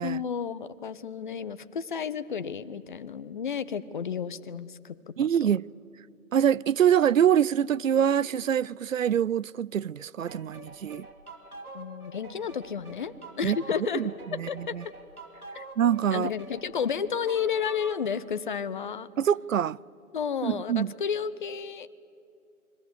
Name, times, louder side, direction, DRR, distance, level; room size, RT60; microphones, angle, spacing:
voice 1, 0.0-4.9 5.2-5.5 11.7-14.0 14.3-14.6 15.5-15.6 16.1-19.1 20.1-21.9, left 7 dB, 35° left, 0.8 m, -32 dB
voice 2, 5.2-5.6 6.3-11.1 13.4-13.6 13.9-14.1 14.4-14.8 15.8-16.3 19.2-19.8 20.4-20.9, right 9 dB, 65° right, 0.5 m, -25 dB
sound 1, 10.3-18.1, right 2 dB, 90° right, 3.5 m, -46 dB
29.0 x 22.0 x 8.0 m
figure-of-eight pair, 150°, 43 cm